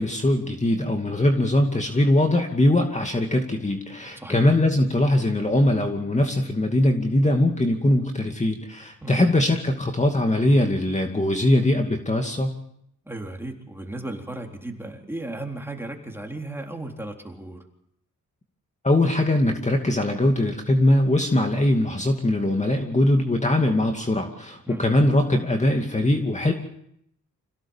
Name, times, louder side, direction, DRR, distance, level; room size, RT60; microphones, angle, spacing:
voice 1, 0.0-12.5 18.8-26.5, left 1 dB, 20° left, 3 dB, 2.5 m, -21 dB
voice 2, 4.2-4.5 9.0-9.2 13.1-17.6 24.7-24.8, right 2 dB, 5° right, 2 dB, 3.9 m, -35 dB
27.0 x 17.0 x 7.4 m, 0.75 s
cardioid pair, 80°, 31 cm